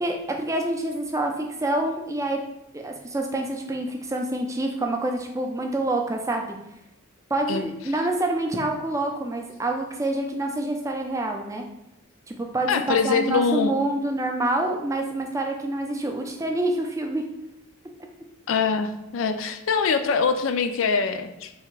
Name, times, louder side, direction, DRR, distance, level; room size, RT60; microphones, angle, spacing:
voice 1, 0.0-2.4 2.7-6.6 7.3-11.6 12.3-17.2, right 2 dB, 15° right, 2 dB, 0.4 m, -27 dB
voice 2, 12.7-13.7 18.5-21.5, left 5 dB, 65° left, 8 dB, 0.3 m, -23 dB
3.5 x 2.8 x 4.5 m, 0.88 s
head